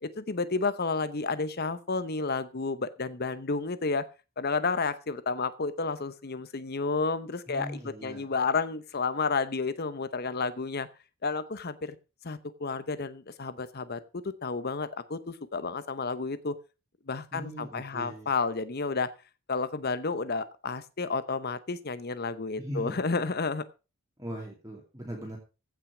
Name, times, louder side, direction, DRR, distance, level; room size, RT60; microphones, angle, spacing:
voice 1, 0.0-4.1 4.4-10.9 11.2-11.9 12.2-14.0 14.4-16.5 17.1-19.1 19.5-23.6, left 4 dB, 45° left, 13 dB, 0.8 m, -31 dB
voice 2, 7.5-8.3 17.3-18.3 22.6-23.0 24.2-25.4, equal, 15° right, 0 dB, 2.5 m, -39 dB
15.5 x 6.0 x 6.0 m, 0.31 s
head